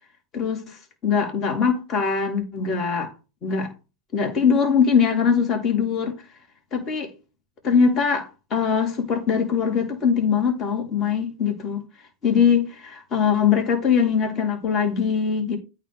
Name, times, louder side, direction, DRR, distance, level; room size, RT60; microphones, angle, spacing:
voice 1, 0.3-3.1 3.4-3.7 4.1-6.1 6.7-7.1 7.6-11.8 12.2-15.6, left 6 dB, 35° left, 4.1 m, -22 dB
9.1 x 4.3 x 6.5 m
hypercardioid pair, 110°, 0 cm